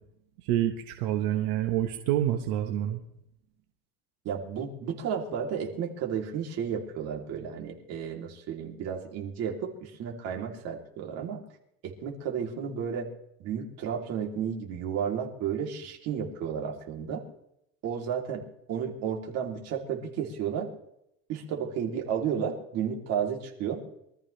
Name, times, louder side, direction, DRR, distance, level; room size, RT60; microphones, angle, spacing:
voice 1, 0.4-3.0, right 12 dB, 85° right, 4 dB, 1.5 m, -27 dB
voice 2, 4.2-11.4 11.8-13.1 13.4-17.2 17.8-18.4 18.7-20.7 21.3-23.8, right 7 dB, 55° right, 1 dB, 3.3 m, -32 dB
24.0 x 13.5 x 3.4 m, 0.77 s
cardioid pair, 145°, 30 cm